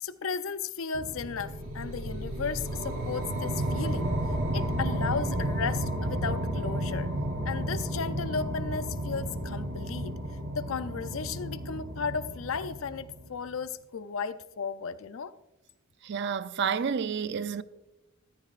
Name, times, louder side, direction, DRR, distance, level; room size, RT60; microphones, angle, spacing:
voice 1, 0.0-4.1 4.5-7.1 7.5-10.1 10.5-15.3, left 5 dB, 70° left, 0.5 m, -35 dB
sound 1, 0.9-13.5, right 1 dB, 75° right, 2.9 m, -32 dB
voice 2, 16.0-17.6, right 6 dB, 55° right, 0.4 m, -30 dB
14.0 x 13.5 x 2.5 m
head